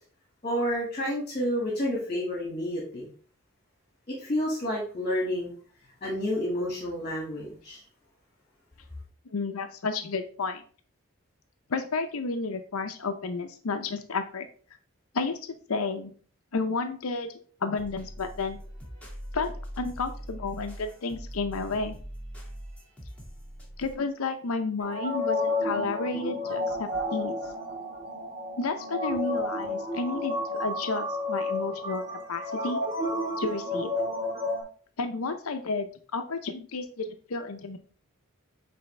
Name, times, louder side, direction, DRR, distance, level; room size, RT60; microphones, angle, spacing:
voice 1, 0.4-3.1 4.1-5.5 6.0-7.8, equal, 35° left, -3 dB, 1.9 m, -30 dB
voice 2, 9.3-10.6 11.7-14.5 15.1-16.1 16.5-17.3 17.6-18.6 19.3-22.0 23.8-27.4 28.6-32.8 33.4-33.9 35.0-37.8, left 4 dB, 90° left, 7 dB, 0.7 m, -31 dB
sound 1, 17.8-23.9, equal, 5° left, 2.1 m, -41 dB
sound 2, 24.8-34.6, left 1 dB, 35° right, 1.8 m, -31 dB
8.6 x 3.4 x 3.3 m, 0.43 s
head